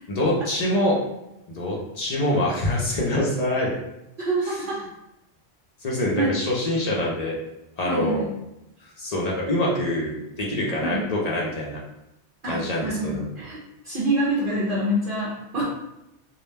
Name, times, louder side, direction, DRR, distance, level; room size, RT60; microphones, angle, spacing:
voice 1, 0.1-1.0 1.5-3.7 4.5-4.6 5.8-7.4 7.8-8.2 9.0-11.8 12.4-13.3, left 1 dB, 55° left, -4 dB, 0.4 m, -25 dB
voice 2, 4.2-4.9 6.1-6.3 7.8-8.3 10.8-11.0 12.4-15.6, right 1 dB, 60° right, -7 dB, 0.6 m, -26 dB
2.3 x 2.1 x 3.1 m, 0.88 s
omnidirectional pair, 1.2 m